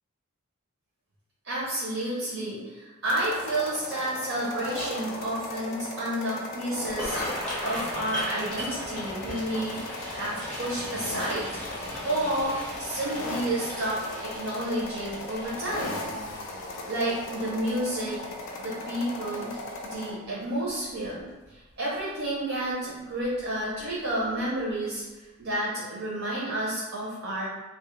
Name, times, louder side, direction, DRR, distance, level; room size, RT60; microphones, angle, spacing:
voice 1, 1.4-7.2 7.6-9.8 10.1-11.4 12.0-16.0 16.9-18.2 18.6-19.5 19.8-21.2 21.8-25.0 25.4-27.5, right 1 dB, 60° right, -7 dB, 0.5 m, -30 dB
sound 1, 3.0-20.1, left 2 dB, 60° left, 0.3 m, -37 dB
sound 2, 6.8-19.9 20.4-20.7 21.0-21.4 21.8-22.0 23.2-23.4 23.8-23.9 24.4-24.5, left 1 dB, 5° left, 0.6 m, -38 dB
2.1 x 2.0 x 2.9 m, 1.2 s
head